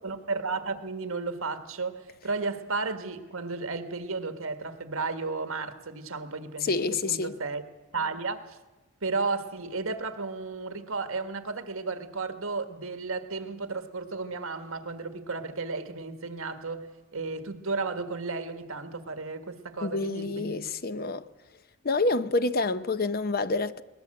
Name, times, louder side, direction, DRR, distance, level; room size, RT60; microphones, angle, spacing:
voice 1, 0.0-7.6 7.9-8.6 9.0-20.7, right 3 dB, 70° right, 1.6 m, -33 dB
voice 2, 6.6-7.4 19.8-21.3 21.8-23.8, left 3 dB, 45° left, 0.6 m, -28 dB
21.0 x 18.5 x 7.8 m
head